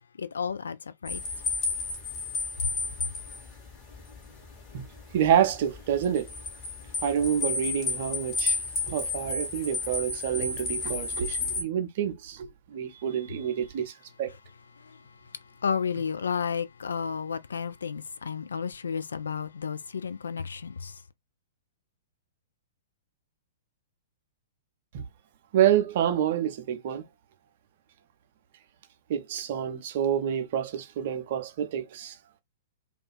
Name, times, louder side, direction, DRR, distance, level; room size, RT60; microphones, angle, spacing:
voice 1, 0.2-0.8 1.0-1.2 2.6-2.7 14.8-15.0 15.6-21.0, left 6 dB, 70° left, 0.3 m, -32 dB
sound 1, 1.1-11.6, left 3 dB, 30° left, 1.1 m, -32 dB
voice 2, 5.1-6.3 7.0-8.6 8.9-13.9 14.2-14.3 24.9-25.0 25.5-27.1 29.1-32.2, right 9 dB, 45° right, 0.5 m, -27 dB
2.4 x 2.4 x 2.2 m
figure-of-eight pair, 110°, 0 cm